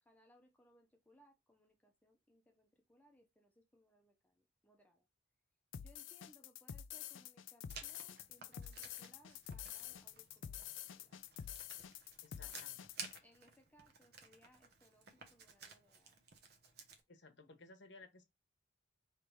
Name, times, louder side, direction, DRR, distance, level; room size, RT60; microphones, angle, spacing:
voice 1, 0.0-5.1 5.8-10.6 11.0-11.2 12.4-12.6 13.2-16.2, left 1 dB, 10° left, 0.8 m, -69 dB
sound 1, 5.7-13.2, left 9 dB, 80° left, 0.4 m, -48 dB
Writing, 7.7-17.0, right 5 dB, 55° right, 1.0 m, -55 dB
voice 2, 12.2-12.8 17.1-18.3, left 3 dB, 65° left, 1.1 m, -59 dB
3.4 x 3.3 x 4.6 m
head